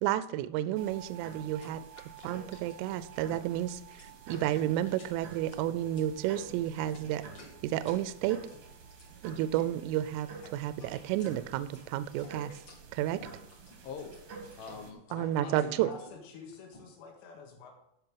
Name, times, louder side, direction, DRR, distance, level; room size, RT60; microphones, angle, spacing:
voice 1, 0.0-1.8 2.2-7.2 7.6-8.4 9.2-12.6 12.9-13.3 15.1-15.9, right 12 dB, 85° right, 14 dB, 3.0 m, -31 dB
sound 1, 0.7-14.9, right 5 dB, 60° right, 1.8 m, -49 dB
sound 2, 0.9-16.8, left 2 dB, 40° left, 2.8 m, -55 dB
voice 2, 13.8-16.1, left 5 dB, 70° left, 4 dB, 2.8 m, -45 dB
voice 3, 15.4-17.7, left 5 dB, 90° left, 1 dB, 4.6 m, -48 dB
15.0 x 5.6 x 4.7 m, 0.84 s
omnidirectional pair, 6.0 m